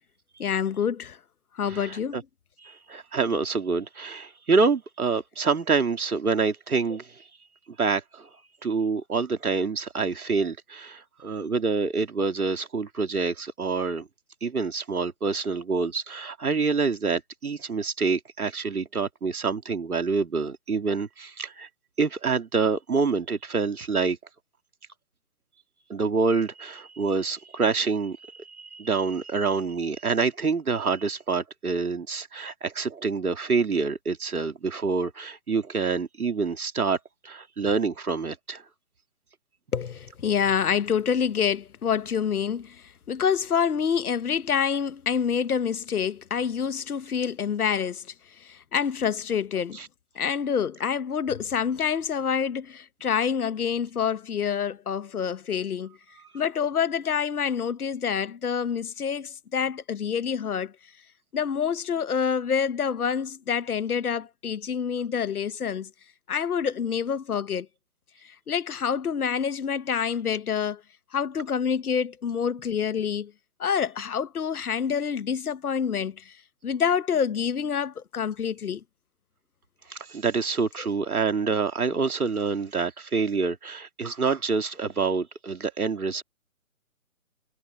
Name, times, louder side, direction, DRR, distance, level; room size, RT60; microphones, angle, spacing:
voice 1, 0.4-1.2 1.5-2.2 39.7-48.0 48.4-49.8 50.2-56.0 56.3-60.7 61.3-65.9 66.3-67.7 68.2-70.8 71.1-73.3 73.6-76.4 76.6-78.8, left 7 dB, 85° left, 0.9 m, -27 dB
voice 2, 1.7-2.2 2.6-7.1 7.8-8.3 8.6-14.1 14.4-21.7 22.0-24.2 25.9-37.0 37.2-38.6 49.7-49.9 79.9-86.2, right 4 dB, 85° right, 2.7 m, -27 dB
hypercardioid pair, 165°, 43 cm